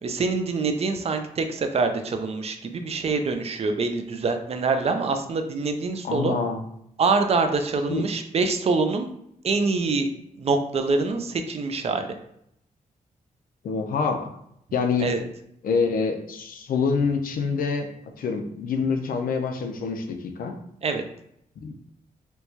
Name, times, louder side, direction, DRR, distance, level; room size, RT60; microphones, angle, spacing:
voice 1, 0.0-6.4 7.0-9.1 9.4-10.1 10.4-12.1 15.0-15.2 20.8-21.0, right 4 dB, 45° right, 7 dB, 0.4 m, -25 dB
voice 2, 6.0-6.6 7.9-8.1 13.6-14.3 14.7-15.1 15.6-17.9 18.2-20.6 21.6-21.7, left 5 dB, 80° left, 5 dB, 0.5 m, -26 dB
4.4 x 2.2 x 2.8 m, 0.74 s
wide cardioid pair, 145°, 15 cm